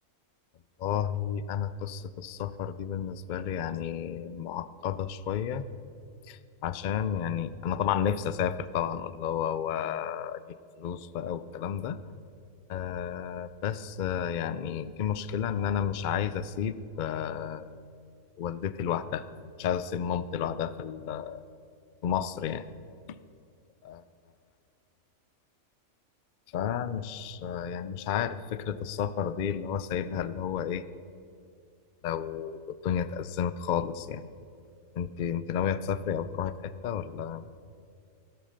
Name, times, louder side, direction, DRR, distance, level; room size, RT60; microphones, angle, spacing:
voice 1, 0.8-5.6 6.3-10.4 10.8-12.0 12.7-17.6 18.4-19.2 19.6-21.5 22.0-22.6 23.8-24.0 26.5-30.8 32.0-34.2 34.9-36.5 36.8-37.5, left 8 dB, 70° left, 14 dB, 0.4 m, -31 dB
12.5 x 12.5 x 6.5 m, 2.4 s
omnidirectional pair, 1.5 m